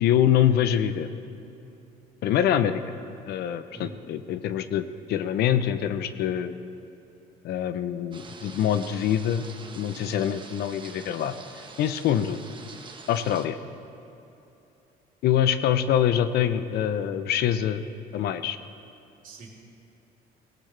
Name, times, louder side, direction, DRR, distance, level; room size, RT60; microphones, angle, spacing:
voice 1, 0.0-1.1 2.2-2.8 3.3-6.6 7.4-9.4 9.8-11.3 11.8-12.4 13.1-13.6 15.2-17.8 18.1-18.6, left 10 dB, 75° left, 11 dB, 0.7 m, -24 dB
voice 2, 3.7-4.0 10.0-10.3 19.2-19.5, right 3 dB, 55° right, -3 dB, 3.3 m, -42 dB
sound 1, 8.1-13.5, right 4 dB, 30° right, 1.2 m, -45 dB
19.0 x 17.0 x 3.4 m, 2.8 s
cardioid pair, 110°, 17 cm